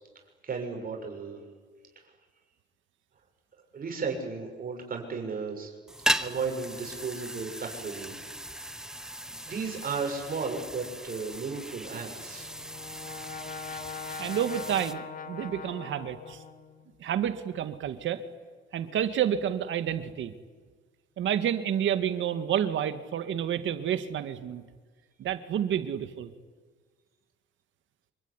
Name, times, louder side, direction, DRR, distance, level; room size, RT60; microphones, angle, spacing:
voice 1, 0.4-1.4 1.9-2.1 3.7-5.7 6.2-8.2 8.6-9.0 9.4-12.5, right 5 dB, 45° right, 2 dB, 6.6 m, -35 dB
sound 1, 5.9-14.9, right 1 dB, 5° right, 1.4 m, -37 dB
Brass instrument, 12.2-17.0, left 5 dB, 45° left, 2.1 m, -42 dB
voice 2, 14.2-16.4 17.0-18.2 18.7-20.3 21.2-24.6 25.2-26.3, right 9 dB, 75° right, 9 dB, 2.1 m, -29 dB
26.5 x 22.5 x 9.9 m, 1.5 s
cardioid pair, 90°, 20 cm